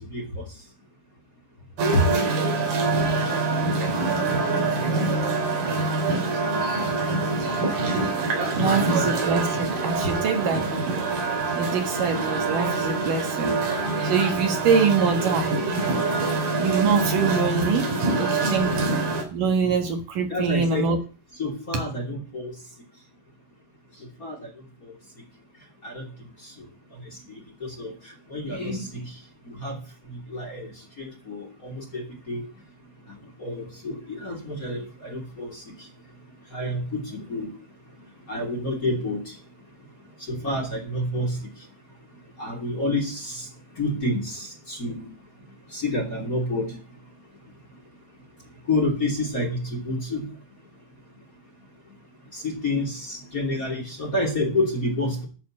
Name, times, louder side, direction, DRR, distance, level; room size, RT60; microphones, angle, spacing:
voice 1, 0.1-0.4 1.9-2.1 8.6-9.1 20.3-20.9 21.4-22.5 24.2-24.5 25.8-26.0 27.3-27.9 28.3-29.0 29.4-29.8 30.3-30.7 31.0-32.5 33.4-35.6 36.5-37.5 38.3-39.3 40.3-41.4 42.4-43.5 43.8-45.1 45.7-46.7 48.7-50.2 52.3-55.3, left 1 dB, 25° left, 1 dB, 2.9 m, -28 dB
sound 1, 1.8-19.2, right 3 dB, 85° right, 5.3 m, -25 dB
voice 2, 8.5-11.0 11.5-13.6 14.0-15.5 16.6-17.9 18.2-18.7 19.3-21.0, right 5 dB, 65° right, 4 dB, 3.1 m, -24 dB
11.5 x 7.1 x 7.3 m, 0.35 s
omnidirectional pair, 4.2 m